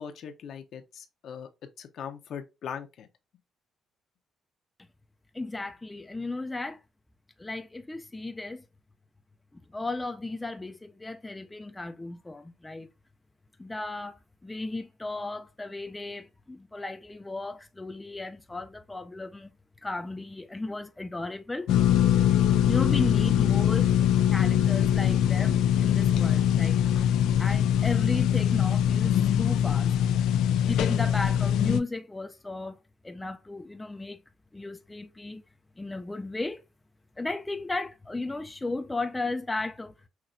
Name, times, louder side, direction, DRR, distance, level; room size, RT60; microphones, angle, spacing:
voice 1, 0.0-1.5 1.8-3.1, left 7 dB, 65° left, 0.8 m, -40 dB
voice 2, 5.3-6.8 7.4-8.6 9.5-12.9 13.6-19.5 19.8-21.7 22.7-24.0 24.3-26.8 27.4-29.9 30.6-34.2 34.5-35.4 35.8-36.6 37.2-39.9, left 2 dB, 15° left, 0.4 m, -35 dB
sound 1, 21.7-31.8, left 10 dB, 90° left, 0.4 m, -23 dB
5.7 x 2.9 x 2.6 m
cardioid pair, 115°, 0 cm